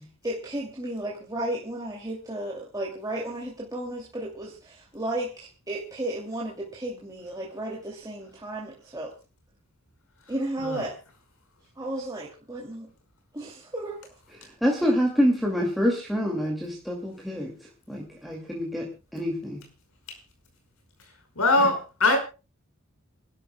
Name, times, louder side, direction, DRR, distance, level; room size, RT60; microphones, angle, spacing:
voice 1, 0.2-9.1 10.3-10.9 11.8-12.9 13.3-14.0, right 1 dB, 15° right, -3 dB, 2.5 m, -33 dB
voice 2, 14.6-17.5 17.9-18.9 19.1-19.6 21.6-21.7, equal, ahead, -2 dB, 2.3 m, -26 dB
voice 3, 21.4-22.2, left 2 dB, 85° left, 5 dB, 5.2 m, -22 dB
27.5 x 12.5 x 2.2 m, 0.32 s
head